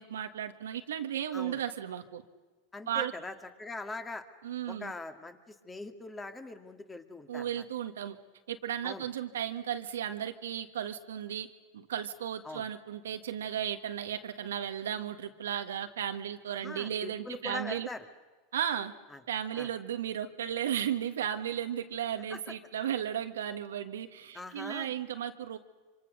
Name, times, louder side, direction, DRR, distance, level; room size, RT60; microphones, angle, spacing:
voice 1, 0.0-2.2 2.9-3.1 4.4-4.9 7.3-8.2 8.5-11.5 11.7-17.9 18.5-18.9 19.3-25.6, right 10 dB, 85° right, 7 dB, 1.5 m, -35 dB
voice 2, 2.7-4.3 4.7-7.6 8.8-9.1 12.4-12.6 16.6-18.1 19.1-19.2 19.6-19.7 22.3-22.4 24.3-24.9, left 2 dB, 15° left, 7 dB, 2.3 m, -42 dB
26.0 x 25.5 x 6.8 m, 1.3 s
hypercardioid pair, 105°, 0 cm